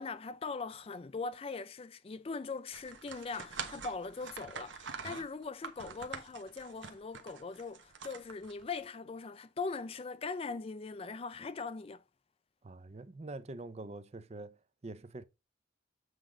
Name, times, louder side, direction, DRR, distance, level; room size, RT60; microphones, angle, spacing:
voice 1, 0.0-12.0, left 4 dB, 30° left, 0.3 m, -41 dB
sound 1, 2.7-8.8, right 5 dB, 80° right, 1.1 m, -45 dB
voice 2, 12.6-14.6 14.8-15.2, right 2 dB, 35° right, 0.5 m, -45 dB
7.9 x 3.7 x 5.0 m
head